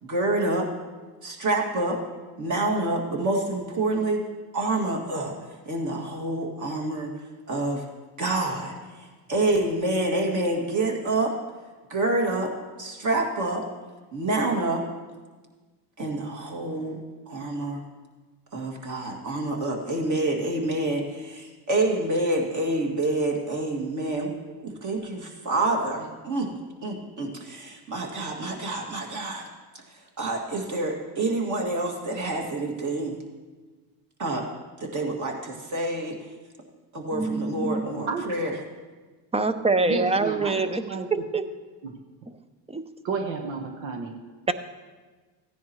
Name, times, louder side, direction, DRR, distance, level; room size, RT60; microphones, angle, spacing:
voice 1, 0.0-0.7 1.2-2.0 2.4-4.2 4.5-7.1 7.5-7.8 8.2-11.3 11.9-12.5 12.8-13.6 14.1-14.8 16.0-17.0 17.3-17.8 18.5-26.5 26.8-29.5 29.9-33.2 34.2-34.4 34.8-36.2 36.9-38.5, right 2 dB, 40° right, 0 dB, 2.2 m, -27 dB
voice 2, 37.1-37.8 39.3-40.8 41.1-41.4 42.7-42.9 44.5-44.6, right 3 dB, 15° right, 11 dB, 0.5 m, -25 dB
voice 3, 39.9-41.1 41.8-42.0 43.0-44.1, right 4 dB, 80° right, 3 dB, 1.3 m, -31 dB
15.5 x 10.0 x 3.1 m, 1.3 s
supercardioid pair, 90°, 45 cm